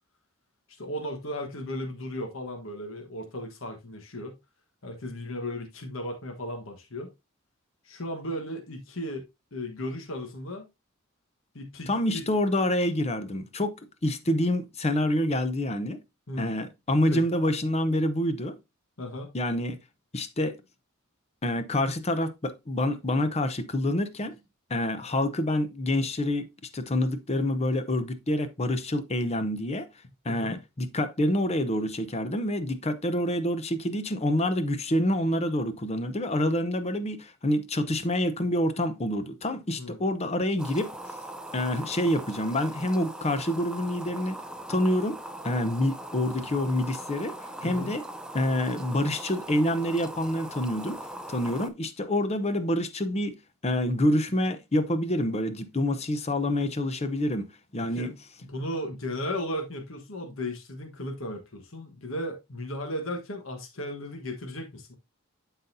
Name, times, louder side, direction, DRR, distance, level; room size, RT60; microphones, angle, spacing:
voice 1, 0.8-4.3 4.8-7.1 7.8-9.2 9.5-10.7 11.5-12.3 16.3-16.6 17.1-17.2 19.0-19.3 30.3-30.6 39.8-40.0 47.6-47.9 57.8-58.1 58.4-65.0, left 1 dB, 65° left, 1.3 m, -35 dB
voice 2, 11.9-13.8 14.0-16.0 16.4-18.6 19.3-19.8 20.1-20.6 21.4-24.4 24.7-29.9 30.2-40.9 41.5-44.4 44.7-45.2 45.4-48.0 48.3-51.0 51.3-53.4 53.6-57.5 57.7-58.1, left 1 dB, 30° left, 0.8 m, -27 dB
sound 1, 40.6-51.7, right 1 dB, 5° right, 0.5 m, -40 dB
12.0 x 4.1 x 2.7 m
head